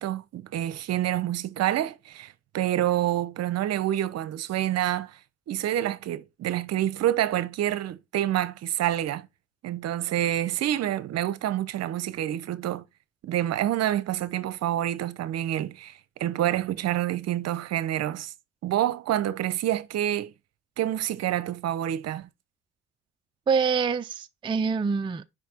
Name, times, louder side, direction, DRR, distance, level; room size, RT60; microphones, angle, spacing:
voice 1, 0.0-5.2 5.5-9.3 9.6-12.8 13.2-18.3 18.6-20.3 20.8-22.3, right 12 dB, 60° right, 0.8 m, -27 dB
voice 2, 23.5-25.3, right 5 dB, 15° right, 0.4 m, -25 dB
5.8 x 5.2 x 4.3 m
cardioid pair, 100°, 29 cm